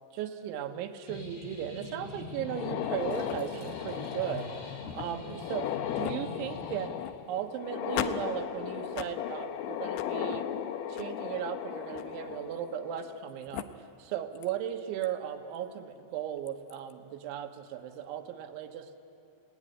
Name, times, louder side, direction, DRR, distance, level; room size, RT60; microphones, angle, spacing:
voice 1, 0.1-7.0 7.3-10.5 10.9-19.0, right 10 dB, 80° right, 4 dB, 3.6 m, -37 dB
sound 1, 1.1-6.9, left 4 dB, 40° left, 3.8 m, -43 dB
sound 2, 2.4-13.2 13.5-13.6 14.4-14.5 15.0-15.1 16.5-16.7, left 10 dB, 75° left, 2.5 m, -36 dB
Liquid, 3.0-8.7, right 2 dB, 50° right, 5.0 m, -56 dB
29.0 x 18.0 x 9.9 m, 2.7 s
omnidirectional pair, 5.4 m